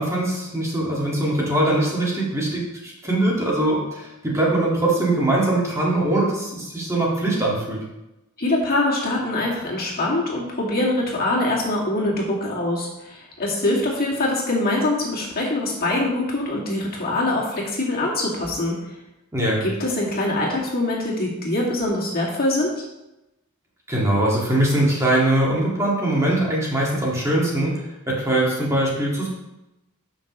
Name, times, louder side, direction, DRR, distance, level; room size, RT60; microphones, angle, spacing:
voice 1, 0.0-7.8 19.3-19.6 23.9-27.7 28.1-29.3, right 1 dB, 15° right, -5 dB, 2.0 m, -22 dB
voice 2, 8.4-18.8 19.6-22.7, left 2 dB, 45° left, -4 dB, 2.3 m, -23 dB
12.5 x 6.0 x 3.1 m, 0.95 s
head